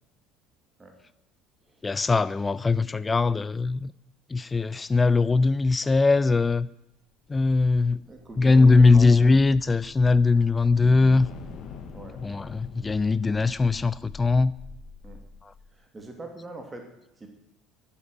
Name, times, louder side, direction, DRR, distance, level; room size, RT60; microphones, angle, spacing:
voice 1, 1.8-3.9 4.3-6.7 7.3-8.1 8.4-11.3 12.2-14.5 15.4-15.5, left 3 dB, 20° left, 18 dB, 0.4 m, -21 dB
sound 1, 8.0-15.7, left 5 dB, 45° left, 1.6 m, -45 dB
voice 2, 8.0-9.0 11.9-12.2 15.0-15.2 15.7-16.9 17.2-17.3, right 3 dB, 20° right, 3 dB, 2.9 m, -41 dB
12.0 x 8.5 x 9.7 m, 0.87 s
figure-of-eight pair, 60°, 0 cm